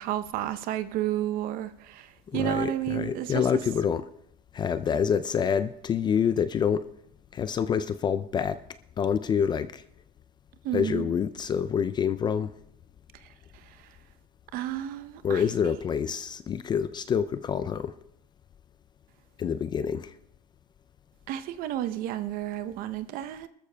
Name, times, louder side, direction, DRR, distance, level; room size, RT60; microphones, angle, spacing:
voice 1, 0.0-3.4 10.6-11.1 13.7-13.8 14.5-15.4 21.3-23.5, right 12 dB, 45° right, 0.8 m, -31 dB
voice 2, 2.3-4.1 4.5-6.9 7.3-8.6 9.0-9.8 10.7-12.5 15.2-17.9 19.4-20.1, left 7 dB, 20° left, 0.4 m, -27 dB
24.5 x 13.5 x 2.3 m
supercardioid pair, 120°, 20 cm